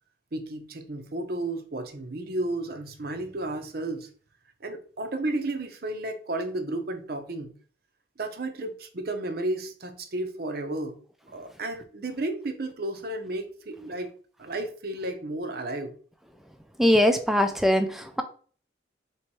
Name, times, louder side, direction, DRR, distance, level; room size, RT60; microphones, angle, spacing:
voice 1, 0.3-4.1 4.6-7.5 8.2-11.0 11.3-14.1 14.4-15.9, right 2 dB, 55° right, 0.7 m, -33 dB
voice 2, 16.8-18.2, equal, ahead, 0.4 m, -21 dB
3.2 x 2.9 x 4.6 m
head